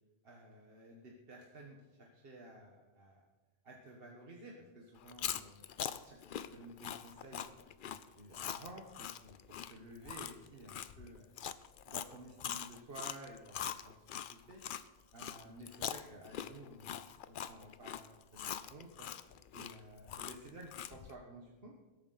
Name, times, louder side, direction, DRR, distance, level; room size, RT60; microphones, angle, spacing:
voice 1, 0.2-3.2 3.6-5.7 6.0-7.6 7.8-11.3 11.5-13.9 14.3-14.6 15.1-18.0 18.3-21.7, right 1 dB, 65° right, -1 dB, 1.6 m, -53 dB
Chewing mastication, 5.0-14.8 15.2-21.1, left 9 dB, 60° left, 0.7 m, -42 dB
20.0 x 8.6 x 4.1 m, 1.2 s
omnidirectional pair, 1.1 m